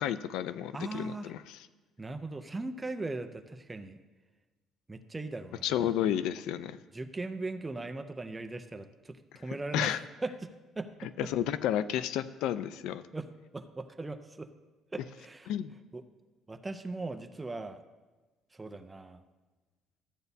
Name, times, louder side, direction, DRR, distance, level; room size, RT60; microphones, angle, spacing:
voice 1, 0.0-1.7 5.6-6.8 9.7-10.0 11.0-13.0 15.5-15.7, left 10 dB, 80° left, 14 dB, 0.3 m, -31 dB
voice 2, 0.7-1.3 2.0-4.0 4.9-5.9 6.9-11.1 13.1-13.3 13.5-14.5 14.9-15.5 15.9-16.0 16.5-17.8 18.6-19.2, right 2 dB, 10° right, 8 dB, 0.4 m, -39 dB
13.5 x 8.0 x 2.7 m, 1.2 s
cardioid pair, 165°, 0 cm